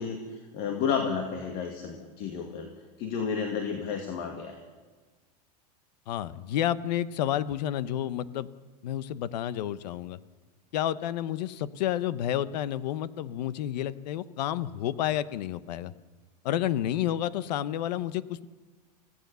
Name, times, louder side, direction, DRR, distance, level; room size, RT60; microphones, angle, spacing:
voice 1, 0.0-2.7 3.0-4.6, left 6 dB, 45° left, 3 dB, 2.3 m, -31 dB
voice 2, 6.1-8.5 8.8-10.2 10.7-15.9 16.4-18.5, left 11 dB, 80° left, 16 dB, 1.0 m, -30 dB
24.5 x 16.0 x 6.9 m, 1.3 s
supercardioid pair, 150°, 21 cm